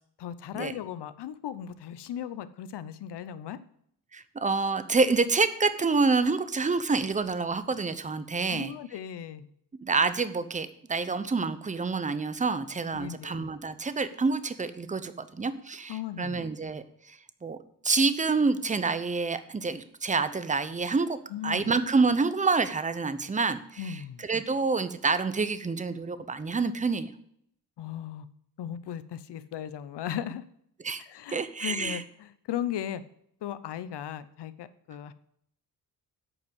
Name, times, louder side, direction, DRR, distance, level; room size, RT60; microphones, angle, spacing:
voice 1, 0.2-3.6 8.5-9.5 12.9-13.5 15.9-16.4 21.3-21.7 23.8-24.2 27.8-28.3 28.6-30.4 31.0-33.0 33.4-35.1, left 10 dB, 75° left, 14 dB, 0.7 m, -37 dB
voice 2, 4.1-8.7 9.8-17.6 17.8-21.2 21.4-27.1 30.8-31.0 31.3-32.0, right 4 dB, 20° right, 12 dB, 0.7 m, -27 dB
8.8 x 5.3 x 7.8 m, 0.70 s
cardioid pair, 105°, 41 cm